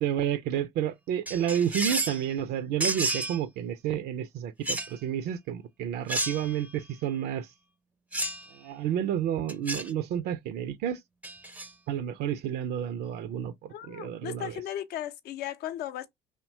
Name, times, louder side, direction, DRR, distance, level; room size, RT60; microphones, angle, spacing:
voice 1, 0.0-7.5 8.5-11.0 11.9-14.5, right 9 dB, 60° right, 0.4 m, -30 dB
sound 1, 1.3-2.2 2.8-3.4 4.6-4.9 6.1-6.6 8.1-8.5 9.5-9.9 11.2-11.7, right 2 dB, 10° right, 0.5 m, -31 dB
voice 2, 13.7-16.1, left 11 dB, 60° left, 0.5 m, -36 dB
2.8 x 2.1 x 2.7 m
hypercardioid pair, 60°, 18 cm